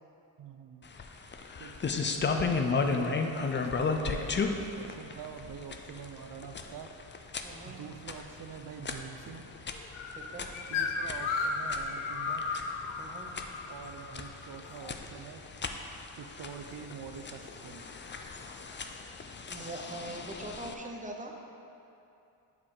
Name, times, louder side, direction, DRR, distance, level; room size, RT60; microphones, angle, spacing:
voice 1, 0.4-0.9 1.6-1.7 2.1-6.9 7.7-9.4 10.7-12.4 13.7-15.4 16.1-17.9, right 7 dB, 45° right, 6 dB, 0.5 m, -45 dB
sound 1, 0.8-20.7, left 4 dB, 25° left, 0.4 m, -36 dB
voice 2, 7.4-7.8 10.1-10.5 13.0-13.3 19.5-21.3, right 1 dB, 15° right, 1 dB, 0.8 m, -42 dB
sound 2, 9.9-14.9, left 4 dB, 70° left, 0.7 m, -35 dB
7.3 x 4.7 x 3.7 m, 2.8 s
cardioid pair, 65°, 49 cm